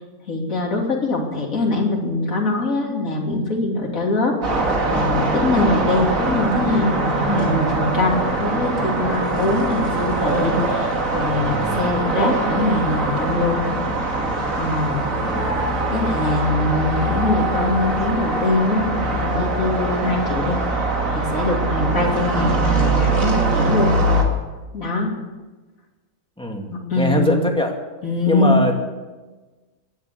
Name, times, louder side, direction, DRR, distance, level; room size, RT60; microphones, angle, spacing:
voice 1, 0.3-4.4 4.9-13.6 14.5-15.1 15.9-23.9 24.2-24.3 24.7-25.1 26.7-27.4 28.0-28.6, left 2 dB, 65° left, -1 dB, 3.4 m, -22 dB
sound 1, 4.4-24.2, right 2 dB, 60° right, 2.6 m, -22 dB
voice 2, 26.4-26.7 27.0-27.7 28.3-28.7, equal, 5° left, 1 dB, 2.3 m, -21 dB
16.0 x 11.0 x 8.3 m, 1.2 s
omnidirectional pair, 1.6 m